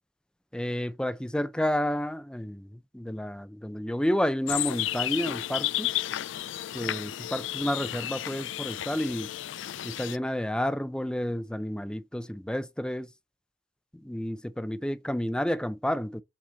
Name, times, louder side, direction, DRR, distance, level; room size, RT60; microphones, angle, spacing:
voice 1, 0.5-5.9 6.7-9.3 9.8-13.1 13.9-16.2, equal, 5° left, 0.5 m, -30 dB
sound 1, 4.5-10.2, left 13 dB, 90° left, 0.4 m, -32 dB
7.3 x 4.2 x 6.3 m
head